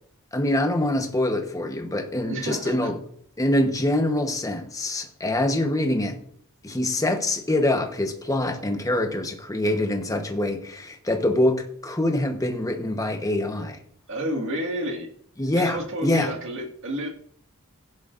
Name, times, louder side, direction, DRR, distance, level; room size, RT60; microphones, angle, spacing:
voice 1, 0.3-3.0 3.4-6.2 6.6-13.8 15.4-16.3, left 1 dB, 15° left, 1.1 m, -25 dB
voice 2, 2.3-2.9 14.1-15.1 15.5-17.1, equal, 60° right, 2.0 m, -30 dB
15.5 x 11.0 x 2.6 m
head